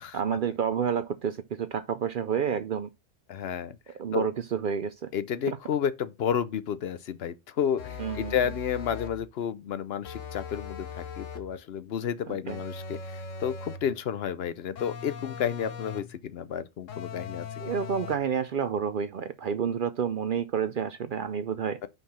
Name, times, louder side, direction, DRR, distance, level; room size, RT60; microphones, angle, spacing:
voice 1, 0.1-2.9 4.0-5.1 5.5-5.6 8.0-8.3 12.3-12.6 17.6-21.8, right 7 dB, 55° right, 0.6 m, -29 dB
voice 2, 3.3-3.8 4.1-4.3 5.1-17.5, left 8 dB, 60° left, 0.8 m, -31 dB
sound 1, 7.8-9.3 10.0-11.6 12.5-13.9 14.8-16.2 16.9-18.3, left 5 dB, 85° left, 1.4 m, -40 dB
5.7 x 5.4 x 4.2 m
omnidirectional pair, 1.3 m